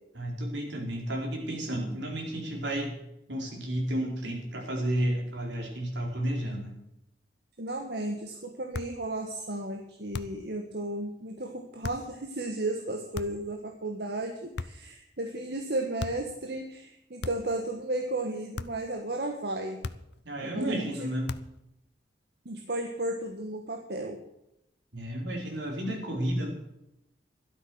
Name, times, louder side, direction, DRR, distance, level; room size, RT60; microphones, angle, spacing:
voice 1, 0.1-3.0 3.3-6.8 20.2-21.3 24.9-26.5, right 1 dB, 80° right, 0 dB, 4.4 m, -32 dB
voice 2, 7.6-19.8 20.4-21.1 22.4-24.2, right 1 dB, 60° right, 4 dB, 1.4 m, -34 dB
sound 1, 8.7-9.0 10.1-10.5 11.8-12.1 13.1-13.5 14.5-15.0 16.0-16.3 17.2-17.6 18.5-18.9 19.8-20.2 21.3-21.6, left 3 dB, 75° left, 0.7 m, -38 dB
12.5 x 12.0 x 6.3 m, 0.83 s
head